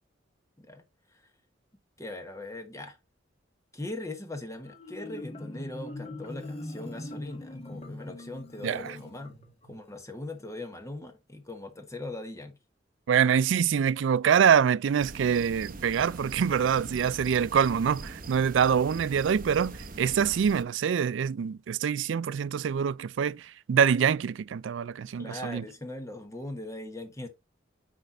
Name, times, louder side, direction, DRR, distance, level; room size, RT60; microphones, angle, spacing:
voice 1, 2.0-3.0 3.7-9.3 9.6-12.6 25.2-27.3, left 2 dB, 15° left, 1.3 m, -40 dB
Marimba xylophone, 4.7-9.8, left 1 dB, 35° left, 1.5 m, -41 dB
voice 2, 13.1-25.6, right 7 dB, 80° right, 0.4 m, -25 dB
sound 1, 15.0-20.6, right 3 dB, 50° right, 0.9 m, -42 dB
9.9 x 3.3 x 3.8 m
head